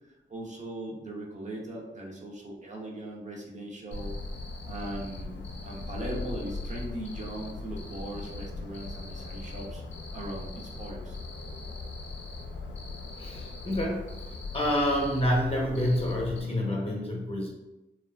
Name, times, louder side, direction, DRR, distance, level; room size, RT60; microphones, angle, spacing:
voice 1, 0.1-4.1 4.7-9.8 10.1-11.2, right 1 dB, 40° right, -2 dB, 0.5 m, -39 dB
Cricket, 3.9-16.4, left 3 dB, 80° left, 0.4 m, -39 dB
voice 2, 13.2-14.1 14.5-17.5, left 1 dB, 30° left, -2 dB, 0.7 m, -28 dB
2.9 x 2.3 x 2.2 m, 0.98 s
wide cardioid pair, 105°, 19 cm